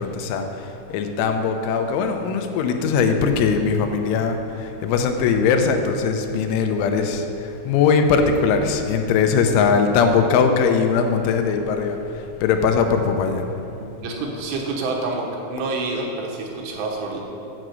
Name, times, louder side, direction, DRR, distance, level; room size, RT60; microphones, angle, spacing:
voice 1, 0.0-13.5, left 5 dB, 90° left, 5 dB, 3.2 m, -20 dB
voice 2, 13.8-15.2 15.5-17.2, right 3 dB, 80° right, -1 dB, 3.7 m, -28 dB
8.8 x 6.1 x 7.9 m, 2.8 s
omnidirectional pair, 5.4 m